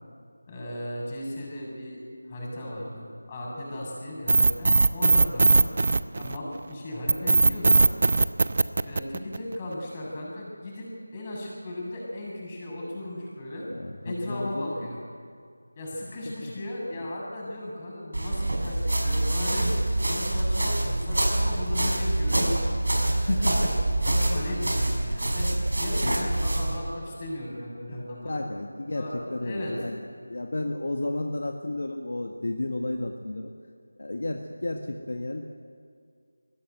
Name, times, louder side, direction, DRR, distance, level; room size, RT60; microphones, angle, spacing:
voice 1, 0.5-2.0 2.2-5.7 6.2-7.9 8.2-8.3 8.8-13.7 14.0-15.0 15.8-22.8 23.2-28.4 28.9-29.8, left 1 dB, 20° left, -3 dB, 7.1 m, -36 dB
sound 1, 4.3-6.6 7.1-9.5, right 3 dB, 45° right, 0.7 m, -19 dB
voice 2, 13.7-14.9 16.4-16.5 23.1-23.7 25.9-26.4 27.9-33.5 34.0-35.4, left 2 dB, 65° left, 3 dB, 1.8 m, -32 dB
sound 2, 18.1-26.8, right 1 dB, 75° right, 5.5 m, -26 dB
23.0 x 17.5 x 9.4 m, 2.2 s
figure-of-eight pair, 170°, 0 cm